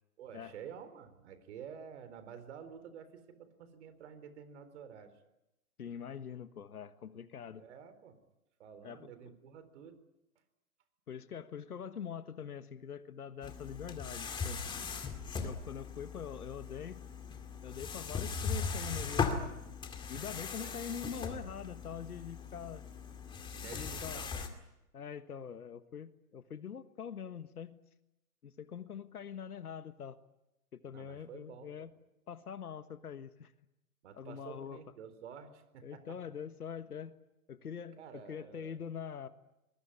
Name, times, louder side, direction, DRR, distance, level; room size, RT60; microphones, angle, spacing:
voice 1, 0.2-5.2 7.6-8.2 8.6-10.0 20.6-20.9 23.5-24.5 30.9-31.9 34.0-36.2 37.9-38.8, right 7 dB, 50° right, 12 dB, 4.1 m, -50 dB
voice 2, 5.8-7.7 8.8-9.1 11.1-14.6 15.4-17.0 17.6-19.3 20.1-22.8 23.7-24.2 24.9-27.8 28.4-30.2 30.7-31.9 32.3-33.5 34.2-34.8 35.8-37.1 37.5-39.3, left 7 dB, 85° left, 11 dB, 1.6 m, -44 dB
sound 1, 13.4-24.5, left 5 dB, 10° left, 2.2 m, -39 dB
24.0 x 21.0 x 9.9 m, 0.92 s
hypercardioid pair, 140°, 44 cm